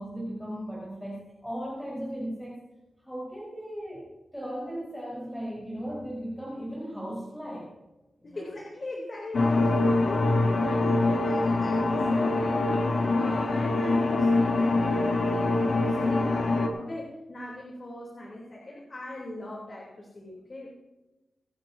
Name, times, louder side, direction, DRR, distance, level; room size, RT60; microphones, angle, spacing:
voice 1, 0.0-2.6 3.0-4.1 4.3-7.7 8.2-8.4, equal, 5° left, -7 dB, 4.6 m, -36 dB
voice 2, 8.2-20.7, left 1 dB, 40° left, -2 dB, 3.3 m, -40 dB
sound 1, 9.3-16.7, left 2 dB, 60° left, 2.1 m, -24 dB
24.5 x 12.0 x 2.8 m, 1.1 s
wide cardioid pair, 130°, 0 cm